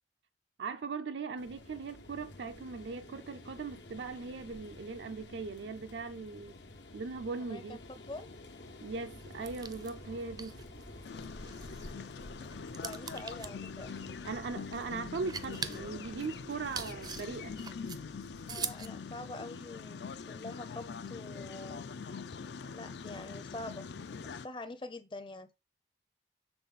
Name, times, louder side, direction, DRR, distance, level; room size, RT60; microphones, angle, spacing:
voice 1, 0.6-6.5 6.9-7.8 8.8-10.6 14.2-17.6, right 4 dB, 80° right, 0.5 m, -39 dB
sound 1, 1.4-17.7, left 2 dB, 90° left, 1.1 m, -51 dB
voice 2, 7.4-7.8 8.1-8.3 12.8-13.9 18.5-21.8 22.7-23.9 24.2-25.5, left 2 dB, 30° left, 0.6 m, -45 dB
sound 2, 9.1-18.9, right 6 dB, 20° right, 0.4 m, -45 dB
sound 3, 11.0-24.5, left 5 dB, 70° left, 0.4 m, -44 dB
6.8 x 3.9 x 4.0 m
head